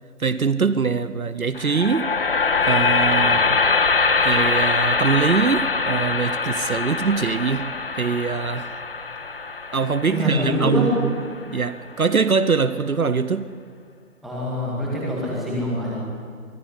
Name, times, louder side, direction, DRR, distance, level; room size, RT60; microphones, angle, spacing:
voice 1, 0.2-2.1 2.7-3.6 4.2-8.7 9.7-11.1 11.5-13.5, right 5 dB, 65° right, 0.9 m, -23 dB
sound 1, 1.5-11.7, left 4 dB, 35° left, 1.3 m, -23 dB
voice 2, 10.1-10.9 14.2-15.9, equal, ahead, 2.0 m, -25 dB
24.0 x 13.5 x 9.8 m
figure-of-eight pair, 155°, 46 cm